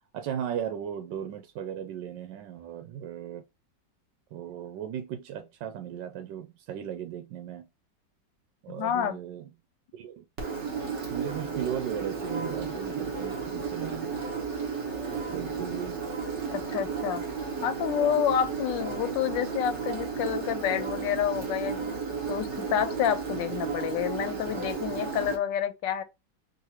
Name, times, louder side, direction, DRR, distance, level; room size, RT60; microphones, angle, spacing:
voice 1, 0.1-3.4 4.3-7.7 8.6-9.5 9.9-10.2 11.1-14.2 15.3-16.0, right 9 dB, 85° right, 1.3 m, -36 dB
voice 2, 8.7-9.2 16.5-17.2 17.6-26.0, left 9 dB, 85° left, 1.4 m, -29 dB
Engine, 10.4-25.4, right 5 dB, 45° right, 1.3 m, -33 dB
4.0 x 2.6 x 2.8 m
omnidirectional pair, 1.9 m